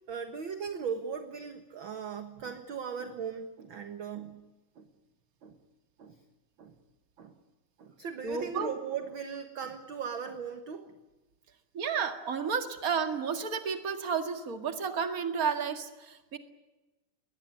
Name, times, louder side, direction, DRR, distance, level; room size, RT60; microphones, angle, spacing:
voice 1, 0.1-4.4 4.8-4.9 5.4-5.6 6.0-6.2 6.6-6.7 7.2-7.3 7.8-10.9, right 6 dB, 50° right, 8 dB, 1.8 m, -38 dB
voice 2, 8.2-8.7 11.7-16.4, right 6 dB, 30° right, 7 dB, 2.1 m, -32 dB
22.5 x 19.0 x 9.5 m, 1.1 s
omnidirectional pair, 3.5 m